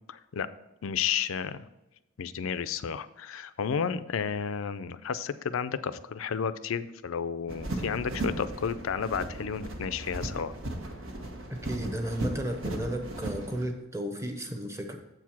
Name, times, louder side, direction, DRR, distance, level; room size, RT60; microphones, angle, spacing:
voice 1, 0.1-0.5 0.8-1.7 2.2-10.5, left 7 dB, 80° left, 14 dB, 0.4 m, -32 dB
sound 1, 7.5-13.6, right 1 dB, 75° right, 1.3 m, -36 dB
voice 2, 11.5-15.0, equal, 15° right, 5 dB, 0.8 m, -34 dB
7.8 x 4.7 x 5.9 m, 0.94 s
head